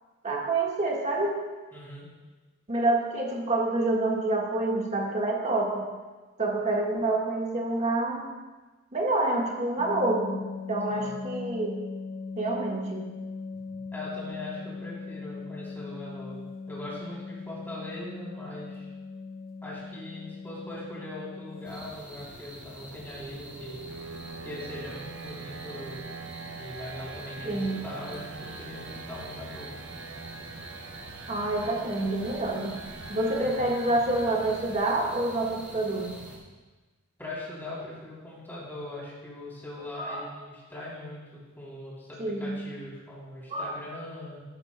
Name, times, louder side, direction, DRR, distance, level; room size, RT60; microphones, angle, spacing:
voice 1, 0.2-1.4 2.7-5.8 6.4-8.3 8.9-10.4 10.7-11.8 12.4-13.1 27.4-27.8 31.3-32.8 33.1-36.1 40.0-40.3 42.2-42.6 43.5-43.7, right 2 dB, 35° right, -1 dB, 1.5 m, -27 dB
voice 2, 1.7-2.1 10.9-11.2 13.9-18.9 19.6-23.8 24.4-26.0 26.6-29.7 33.4-33.6 37.2-41.2 41.5-44.4, left 1 dB, 10° left, -6 dB, 3.2 m, -41 dB
sound 1, 9.8-21.8 23.7-23.9 24.2-24.3 24.7-24.9 25.2-25.5, left 4 dB, 30° left, 1.6 m, -39 dB
sound 2, 21.6-36.4, equal, 5° right, 1.8 m, -46 dB
sound 3, 22.6-35.5, right 4 dB, 75° right, 0.6 m, -44 dB
14.0 x 11.5 x 2.2 m, 1.3 s
head